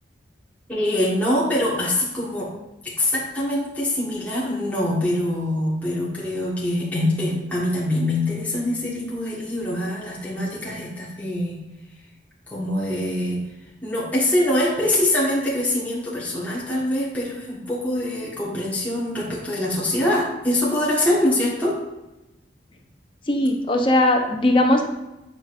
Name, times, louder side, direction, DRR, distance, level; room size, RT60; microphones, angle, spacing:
voice 1, 0.7-2.5 2.8-11.6 12.5-13.4 13.8-21.8, left 1 dB, 10° left, -7 dB, 1.6 m, -24 dB
voice 2, 23.3-24.8, left 1 dB, 25° left, 2 dB, 0.8 m, -19 dB
9.2 x 5.0 x 2.6 m, 0.98 s
head